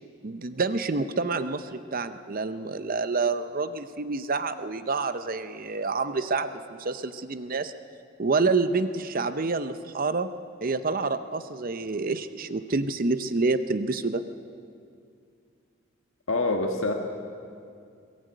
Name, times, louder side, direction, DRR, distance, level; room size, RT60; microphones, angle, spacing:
voice 1, 0.2-6.5 6.8-7.7 8.2-10.3 10.6-14.2, right 3 dB, 45° right, 11 dB, 0.7 m, -28 dB
voice 2, 16.3-16.9, left 2 dB, 85° left, 3 dB, 1.6 m, -25 dB
22.0 x 17.5 x 9.2 m, 2.4 s
head